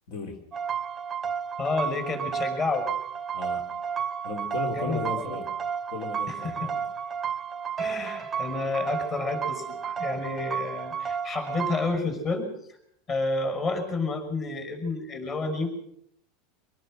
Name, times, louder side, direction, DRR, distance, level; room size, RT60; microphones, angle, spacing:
voice 1, 0.1-0.4 3.3-3.7 4.2-5.5 5.9-6.8, left 3 dB, 65° left, 2 dB, 3.8 m, -35 dB
sound 1, 0.5-12.0, right 7 dB, 15° right, 0.8 m, -32 dB
voice 2, 1.6-2.9 4.7-5.4 6.3-6.7 7.8-12.5 13.1-15.7, left 3 dB, 30° left, 5 dB, 5.8 m, -30 dB
25.5 x 19.0 x 6.4 m, 0.73 s
supercardioid pair, 145°, 0 cm